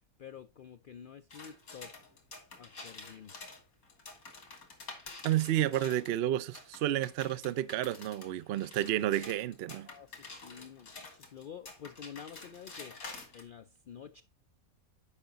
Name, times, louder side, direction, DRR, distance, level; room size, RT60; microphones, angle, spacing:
voice 1, 0.2-1.9 2.6-3.3 9.7-13.0 13.3-14.2, left 8 dB, 70° left, 0.5 m, -49 dB
sound 1, 1.3-6.1 6.5-13.4, left 3 dB, 90° left, 2.8 m, -49 dB
voice 2, 5.2-9.9, right 12 dB, 65° right, 0.6 m, -31 dB
10.0 x 5.6 x 3.9 m
omnidirectional pair, 1.5 m